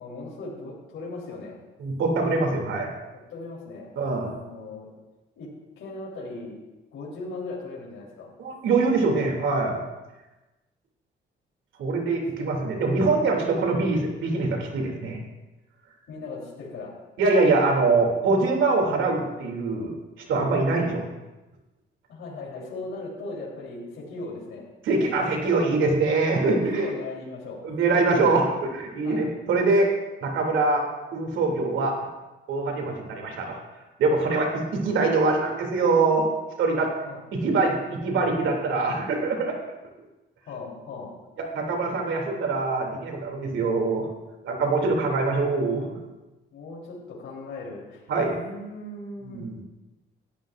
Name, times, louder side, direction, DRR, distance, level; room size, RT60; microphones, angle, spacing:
voice 1, 0.0-1.6 3.3-3.9 4.2-4.9 5.4-5.5 5.8-6.5 6.9-8.3 16.1-16.9 20.7-21.0 22.1-24.7 26.7-27.6 29.0-29.3 32.8-32.9 34.3-34.5 37.0-37.2 40.4-41.1 46.5-48.1 48.4-49.5, left 3 dB, 80° left, -4 dB, 3.7 m, -38 dB
voice 2, 1.8-2.9 4.0-4.3 8.4-9.8 11.8-15.2 17.2-19.9 20.3-21.1 24.8-26.9 27.6-29.9 30.2-30.8 31.1-32.0 32.5-33.6 34.0-36.3 36.6-36.9 37.3-39.6 41.5-44.1 44.4-46.0 48.1-48.3 49.3-49.5, right 3 dB, 80° right, 1 dB, 2.8 m, -23 dB
18.0 x 13.0 x 2.5 m, 1.1 s
cardioid pair, 90°, 20 cm